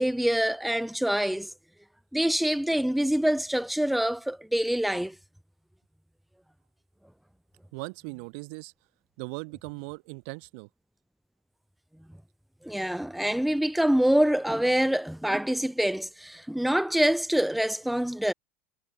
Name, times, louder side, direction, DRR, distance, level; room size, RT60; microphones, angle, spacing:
voice 1, 0.0-1.5 2.1-5.2 12.6-18.3, right 1 dB, ahead, 0.3 m, -25 dB
voice 2, 7.7-8.7 9.2-10.7, right 34 dB, 55° right, 1.1 m, -39 dB
figure-of-eight pair, 80°, 8 cm